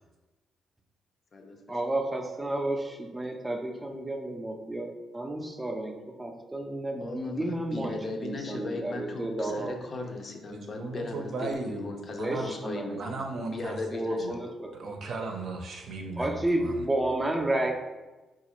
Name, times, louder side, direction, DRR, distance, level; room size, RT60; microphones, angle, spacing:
voice 1, 1.7-9.7 12.2-13.0 13.9-14.7 16.2-17.7, right 1 dB, 15° right, 3 dB, 0.5 m, -31 dB
voice 2, 7.0-14.5, left 2 dB, 40° left, 2 dB, 0.5 m, -38 dB
voice 3, 10.7-11.9 12.2-12.5 12.9-13.8 14.2-14.3 14.7-16.3, right 3 dB, 60° right, 2 dB, 0.6 m, -35 dB
4.1 x 2.4 x 2.9 m, 1.1 s
cardioid pair, 90°, 0 cm